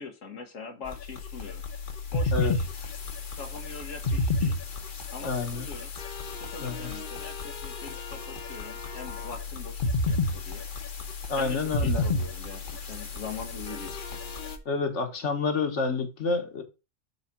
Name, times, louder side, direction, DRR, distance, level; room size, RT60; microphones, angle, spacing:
voice 1, 0.0-1.6 2.1-2.7 3.3-4.6 5.1-5.9 6.3-10.6 11.4-14.2, left 4 dB, 90° left, 1.5 m, -42 dB
sound 1, 0.9-14.6, left 3 dB, 45° left, 1.0 m, -32 dB
voice 2, 5.2-5.7 6.6-6.9 11.3-12.0 14.6-16.6, left 4 dB, 70° left, 1.6 m, -28 dB
6.3 x 4.0 x 5.8 m
omnidirectional pair, 1.3 m